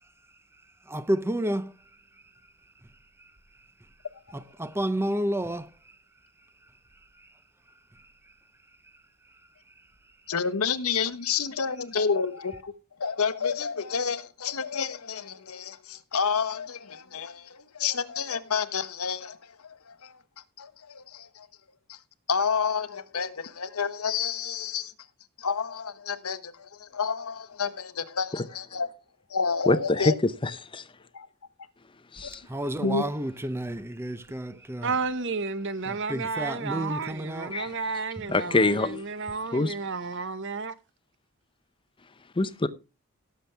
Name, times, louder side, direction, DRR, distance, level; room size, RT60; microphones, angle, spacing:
voice 1, 0.9-1.7 3.2-3.3 4.3-6.0 7.9-8.1 32.3-34.9 35.8-37.8 38.1-38.3, right 1 dB, 10° right, 0.6 m, -31 dB
voice 2, 10.3-12.7 13.0-19.4 19.9-20.1 20.6-21.5 21.9-22.0 22.3-24.9 25.4-28.9 29.3-30.1 31.1-31.3 32.8-33.0, left 6 dB, 85° left, 1.1 m, -29 dB
voice 3, 29.7-30.8 32.1-32.4 37.5-37.7 38.3-39.0 39.5-39.7 42.4-42.7, left 2 dB, 25° left, 0.7 m, -25 dB
voice 4, 34.8-40.7, right 4 dB, 60° right, 1.0 m, -32 dB
17.5 x 7.2 x 3.3 m
head